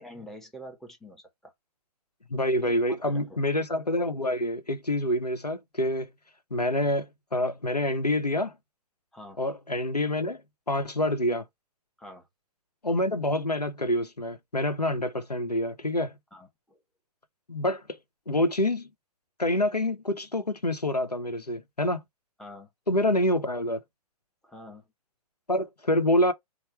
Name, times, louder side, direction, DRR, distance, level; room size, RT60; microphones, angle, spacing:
voice 1, 0.0-1.5 2.6-2.7 3.0-3.4 9.1-9.4 12.0-12.3 16.3-16.8 22.4-22.7 24.4-24.9, equal, ahead, 0.7 m, -46 dB
voice 2, 2.3-6.1 6.5-8.6 9.4-10.4 10.7-11.5 12.8-16.1 17.5-18.0 18.3-18.9 19.4-22.0 22.9-23.8 25.5-26.3, left 1 dB, 90° left, 0.9 m, -27 dB
4.3 x 2.2 x 4.2 m
figure-of-eight pair, 120°, 20 cm